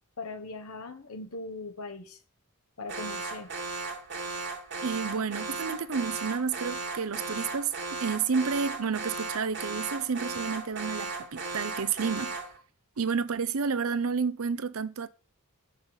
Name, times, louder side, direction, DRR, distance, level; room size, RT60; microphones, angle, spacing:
voice 1, 0.2-2.2 2.8-3.5, left 3 dB, 80° left, 1.3 m, -40 dB
Alarm, 2.9-12.6, right 3 dB, 50° right, 2.0 m, -36 dB
voice 2, 4.8-7.7 8.0-12.4 13.0-15.1, right 5 dB, 70° right, 0.6 m, -30 dB
7.1 x 5.6 x 5.6 m
head